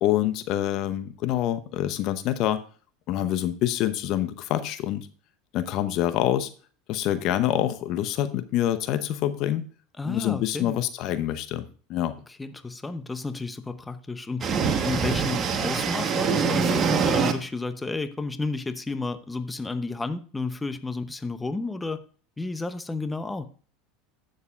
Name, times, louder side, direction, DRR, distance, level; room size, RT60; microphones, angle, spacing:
voice 1, 0.0-2.6 3.1-5.1 5.5-6.5 6.9-9.6 10.0-12.2, left 12 dB, 55° left, 12 dB, 0.8 m, -26 dB
voice 2, 10.0-10.8 12.4-14.5 14.8-22.0 22.4-23.5, left 3 dB, 15° left, 11 dB, 0.8 m, -32 dB
sound 1, 14.4-17.3, right 6 dB, 40° right, 1.3 m, -24 dB
15.0 x 6.6 x 2.4 m, 0.40 s
hypercardioid pair, 85°, 0 cm